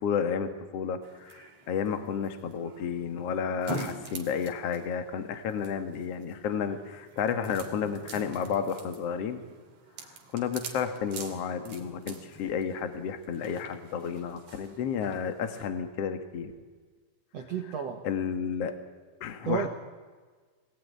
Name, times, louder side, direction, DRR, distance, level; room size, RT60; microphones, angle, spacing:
voice 1, 0.0-9.4 10.0-16.5 18.0-18.7 19.2-19.7, left 7 dB, 55° left, 8 dB, 1.8 m, -32 dB
sound 1, 1.0-15.7, right 3 dB, 50° right, 3.3 m, -45 dB
voice 2, 17.3-18.0 19.4-19.7, right 7 dB, 70° right, 3 dB, 1.5 m, -31 dB
24.0 x 19.5 x 9.7 m, 1.4 s
omnidirectional pair, 5.3 m